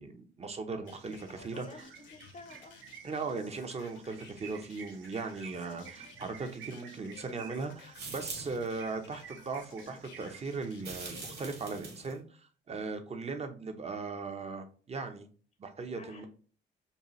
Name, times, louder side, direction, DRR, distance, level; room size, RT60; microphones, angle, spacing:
voice 1, 0.0-1.8 3.0-12.4 12.7-15.3 15.6-16.3, right 4 dB, 30° right, 0.7 m, -38 dB
sound 1, 0.9-11.5, left 6 dB, 70° left, 0.9 m, -55 dB
sound 2, 0.9-10.9, right 8 dB, 75° right, 0.6 m, -53 dB
voice 2, 1.5-2.8 16.0-16.3, left 3 dB, 45° left, 0.7 m, -51 dB
sound 3, 7.9-8.7 10.8-12.2, right 4 dB, 55° right, 1.9 m, -43 dB
5.3 x 2.2 x 3.0 m
cardioid pair, 90°, 20 cm